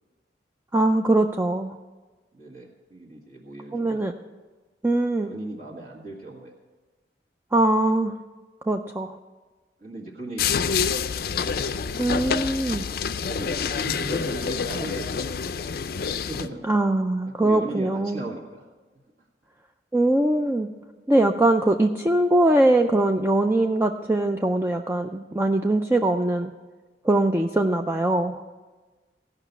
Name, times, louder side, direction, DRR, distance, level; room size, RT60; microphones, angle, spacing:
voice 1, 0.7-1.7 3.7-4.1 4.8-5.3 7.5-8.1 8.7-9.2 12.0-12.9 16.6-18.3 19.9-20.7 21.1-26.5 27.0-28.4, right 1 dB, 15° right, 4 dB, 0.4 m, -22 dB
voice 2, 2.3-4.1 5.2-6.5 9.8-10.9 11.4-11.7 13.2-15.3 16.2-16.7 17.4-18.7, right 2 dB, 50° right, -5 dB, 1.8 m, -37 dB
sound 1, 10.4-16.5, left 6 dB, 55° left, 0.4 m, -27 dB
16.0 x 5.8 x 8.1 m, 1.3 s
head